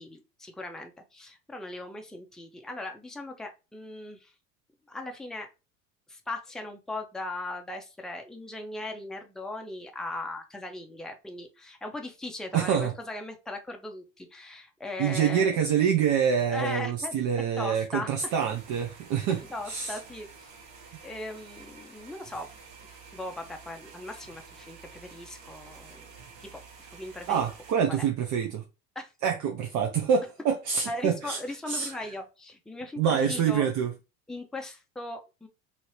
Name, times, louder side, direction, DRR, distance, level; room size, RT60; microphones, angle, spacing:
voice 1, 0.0-4.3 4.9-5.5 6.1-15.7 16.5-17.2 17.6-18.1 19.3-20.5 21.0-22.5 23.1-26.1 26.4-26.6 26.9-27.4 27.9-28.0 29.0-29.1 30.9-33.7 34.3-35.5, left 2 dB, ahead, 0.6 m, -38 dB
voice 2, 12.5-12.9 15.0-20.0 27.3-28.6 29.2-31.4 31.7-31.9 33.0-33.9, right 7 dB, 45° right, 0.6 m, -26 dB
sound 1, 18.2-27.7, right 5 dB, 60° right, 1.2 m, -50 dB
2.8 x 2.8 x 3.1 m
hypercardioid pair, 75°, 41 cm